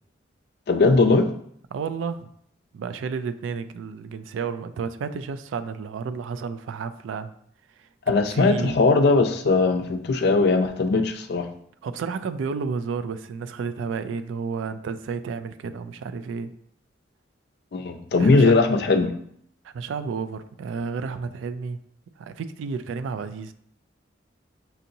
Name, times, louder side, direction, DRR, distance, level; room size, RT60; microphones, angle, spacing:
voice 1, 0.7-1.3 8.1-11.5 17.7-19.1, left 3 dB, 55° left, 7 dB, 0.4 m, -19 dB
voice 2, 1.7-2.3 2.7-7.3 7.8-8.8 11.8-16.5 18.2-18.5 19.6-21.8 22.2-23.5, right 5 dB, 90° right, 11 dB, 0.3 m, -31 dB
5.5 x 2.8 x 2.6 m, 0.66 s
head